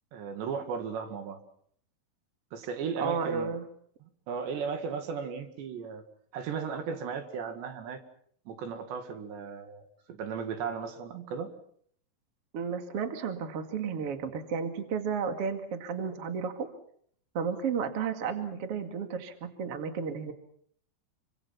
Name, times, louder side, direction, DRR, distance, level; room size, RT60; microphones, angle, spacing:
voice 1, 0.1-1.4 2.5-3.5 4.3-6.0 6.3-8.0 8.5-11.5, right 6 dB, 70° right, 7 dB, 4.2 m, -36 dB
voice 2, 3.0-3.6 12.5-16.7 17.3-20.3, right 6 dB, 40° right, 6 dB, 2.4 m, -32 dB
28.0 x 25.0 x 5.9 m, 0.64 s
omnidirectional pair, 5.4 m